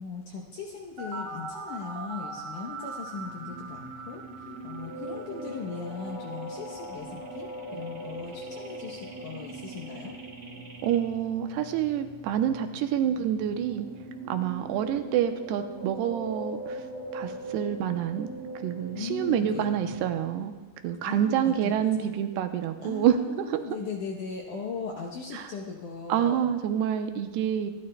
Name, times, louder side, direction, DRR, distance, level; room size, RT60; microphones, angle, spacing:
voice 1, 0.0-10.2 18.9-19.7 21.0-22.1 22.8-26.5, left 5 dB, 75° left, 0 dB, 1.8 m, -38 dB
sound 1, 1.0-11.0, right 4 dB, 65° right, 1.3 m, -42 dB
sound 2, 3.0-20.3, right 1 dB, 40° right, 6.4 m, -41 dB
voice 2, 10.8-13.9 14.3-16.8 17.1-18.3 18.6-20.5 20.8-23.6 25.3-25.5 26.1-27.7, right 9 dB, 85° right, 7 dB, 2.8 m, -27 dB
25.5 x 12.0 x 2.2 m, 1.2 s
omnidirectional pair, 4.8 m